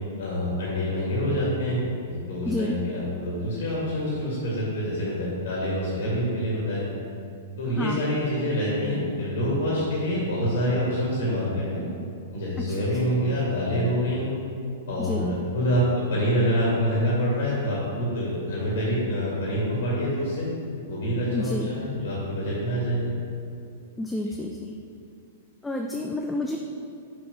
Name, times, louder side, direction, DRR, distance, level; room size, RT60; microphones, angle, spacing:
voice 1, 0.2-6.9 7.6-11.8 12.3-14.3 14.9-20.5 20.9-23.1, equal, 55° left, -6 dB, 1.9 m, -26 dB
voice 2, 21.3-21.7 24.0-24.7 25.6-26.6, left 2 dB, 5° left, 1 dB, 0.5 m, -29 dB
6.1 x 5.9 x 5.6 m, 2.5 s
figure-of-eight pair, 105°, 0 cm